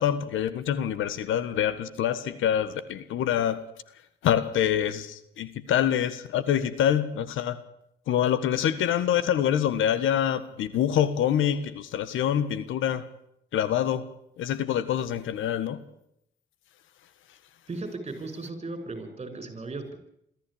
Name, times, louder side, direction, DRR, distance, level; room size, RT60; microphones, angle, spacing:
voice 1, 0.0-3.6 4.2-7.6 8.1-13.1 13.5-14.0 14.4-15.8, left 10 dB, 85° left, 15 dB, 1.6 m, -26 dB
voice 2, 17.7-20.0, right 3 dB, 30° right, 9 dB, 6.3 m, -36 dB
23.5 x 14.5 x 8.8 m, 0.76 s
cardioid pair, 90°, 20 cm